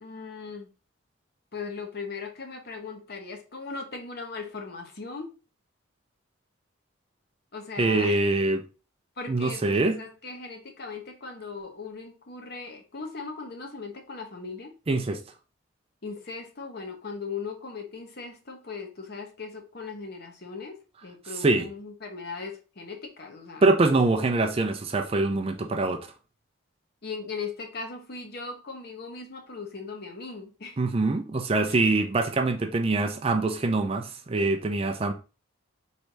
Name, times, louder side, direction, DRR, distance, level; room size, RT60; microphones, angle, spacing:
voice 1, 0.0-0.7 1.5-5.3 7.5-8.3 9.2-14.8 16.0-23.7 27.0-30.8 31.7-32.1, left 4 dB, 50° left, 0.9 m, -38 dB
voice 2, 7.8-8.6 9.3-10.0 14.9-15.2 21.4-21.6 23.6-26.1 30.8-35.1, right 2 dB, 30° right, 0.4 m, -24 dB
3.3 x 2.7 x 4.5 m
head